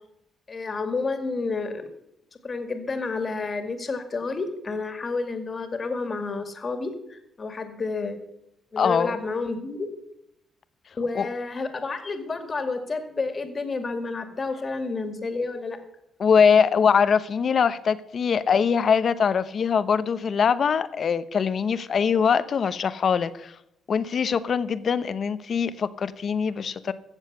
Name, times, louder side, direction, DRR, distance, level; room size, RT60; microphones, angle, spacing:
voice 1, 0.5-1.8 2.4-8.2 8.7-9.9 11.0-15.8, left 3 dB, 35° left, 7 dB, 2.1 m, -30 dB
voice 2, 8.8-9.1 11.1-11.3 16.2-23.5 23.9-26.9, left 6 dB, 50° left, 14 dB, 0.8 m, -22 dB
15.5 x 7.3 x 6.7 m, 0.80 s
cardioid pair, 90°, 0 cm